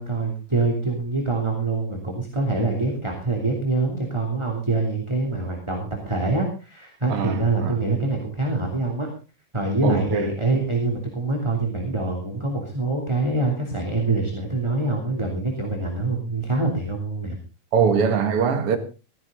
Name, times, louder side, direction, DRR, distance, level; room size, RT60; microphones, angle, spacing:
voice 1, 0.0-9.1 9.5-17.4 17.8-17.9, right 3 dB, 10° right, 2.7 m, -25 dB
voice 2, 7.1-7.8 9.8-10.3 17.7-18.8, right 6 dB, 55° right, 2.7 m, -22 dB
16.0 x 15.0 x 3.8 m
omnidirectional pair, 3.4 m